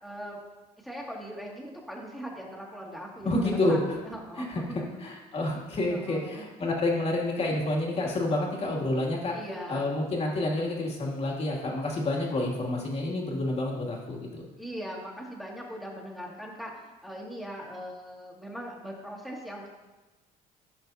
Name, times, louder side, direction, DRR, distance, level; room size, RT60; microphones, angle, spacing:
voice 1, 0.0-0.4 0.8-4.9 5.9-6.5 9.3-9.8 14.6-19.7, equal, ahead, -3 dB, 2.2 m, -40 dB
voice 2, 3.2-3.8 4.4-4.6 5.0-9.4 9.7-14.5, left 2 dB, 35° left, -2 dB, 2.5 m, -29 dB
15.5 x 6.1 x 2.8 m, 1.2 s
cardioid pair, 110°, 17 cm